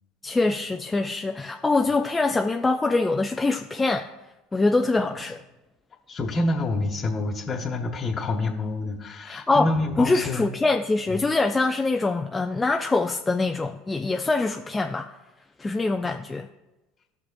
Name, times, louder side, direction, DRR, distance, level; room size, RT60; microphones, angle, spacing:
voice 1, 0.2-4.1 4.5-5.4 9.3-9.7 10.0-15.1 15.6-16.5, left 3 dB, 20° left, 4 dB, 0.5 m, -24 dB
voice 2, 6.1-10.4, left 2 dB, 35° left, -1 dB, 1.2 m, -27 dB
17.0 x 5.9 x 2.3 m, 1.0 s
hypercardioid pair, 75°, 0 cm